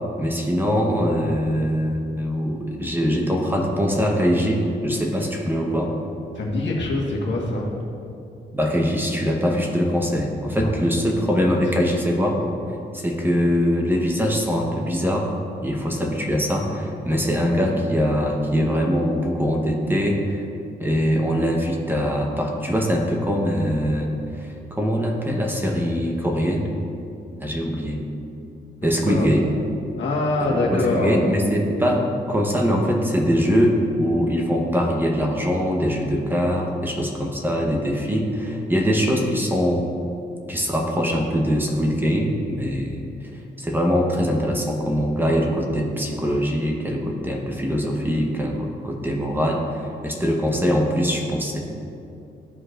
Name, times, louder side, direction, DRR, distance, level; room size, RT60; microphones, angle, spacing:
voice 1, 0.2-5.9 8.5-12.4 12.9-15.3 15.6-20.4 20.8-24.1 24.3-26.7 27.4-28.0 28.8-29.4 30.5-39.9 40.5-43.3 43.6-51.6, equal, 10° right, 0 dB, 1.0 m, -22 dB
voice 2, 6.3-7.7 10.6-10.7 11.5-11.6 28.8-29.3 30.0-31.2, left 2 dB, 70° left, -3 dB, 1.5 m, -24 dB
14.0 x 4.7 x 2.5 m, 2.6 s
cardioid pair, 95°, 19 cm